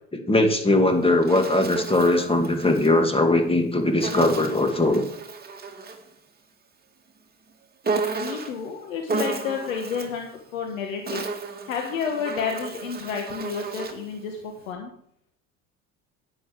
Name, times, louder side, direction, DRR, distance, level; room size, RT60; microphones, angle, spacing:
voice 1, 0.1-5.0, left 2 dB, 15° left, 5 dB, 2.3 m, -20 dB
Insect, 0.8-2.9 4.0-6.1 7.8-8.6 9.1-10.2 10.8-14.1, right 4 dB, 25° right, 2.0 m, -33 dB
voice 2, 8.2-11.2 11.6-14.9, left 6 dB, 85° left, 2 dB, 1.6 m, -30 dB
10.0 x 9.2 x 4.8 m, 0.67 s
hypercardioid pair, 70°, 38 cm